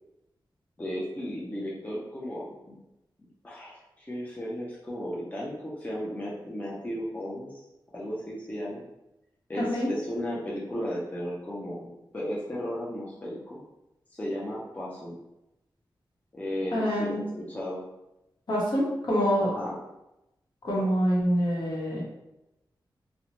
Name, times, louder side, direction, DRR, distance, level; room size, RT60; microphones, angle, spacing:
voice 1, 0.8-2.8 3.4-7.6 7.9-8.8 9.5-13.6 14.1-15.2 16.3-17.8 19.4-19.8, equal, 20° left, -6 dB, 0.5 m, -35 dB
voice 2, 9.6-9.9 16.7-17.2 18.5-19.6 20.6-22.0, equal, 55° left, -5 dB, 1.0 m, -26 dB
2.6 x 2.1 x 2.9 m, 0.91 s
wide cardioid pair, 95°, 8 cm